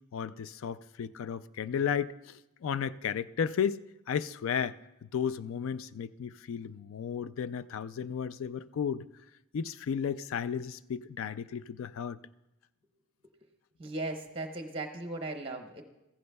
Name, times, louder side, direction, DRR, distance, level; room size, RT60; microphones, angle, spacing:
voice 1, 0.1-4.8 5.0-9.0 9.5-12.2, left 7 dB, 70° left, 0.3 m, -34 dB
voice 2, 13.8-15.8, right 2 dB, 25° right, 0.7 m, -37 dB
15.0 x 14.5 x 2.2 m
head